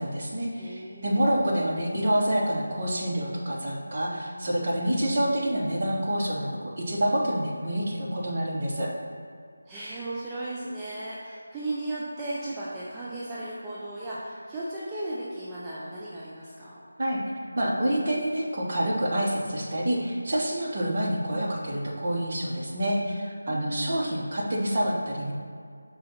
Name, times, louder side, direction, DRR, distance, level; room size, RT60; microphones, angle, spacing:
voice 1, 0.0-8.9 17.0-17.2 17.5-25.3, right 1 dB, 40° right, -4 dB, 1.4 m, -27 dB
voice 2, 0.5-1.3 9.7-16.8 23.4-24.0, right 2 dB, 10° right, -8 dB, 0.6 m, -36 dB
5.5 x 3.9 x 5.7 m, 2.2 s
figure-of-eight pair, 165°, 0 cm